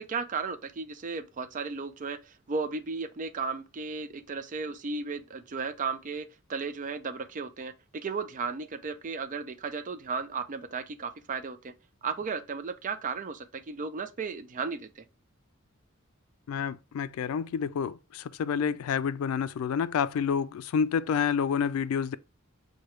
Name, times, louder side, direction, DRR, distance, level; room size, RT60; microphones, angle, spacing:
voice 1, 0.0-11.7 12.0-15.0, right 4 dB, 40° right, 0.4 m, -35 dB
voice 2, 16.5-22.2, left 7 dB, 80° left, 0.3 m, -29 dB
4.7 x 2.2 x 3.0 m
head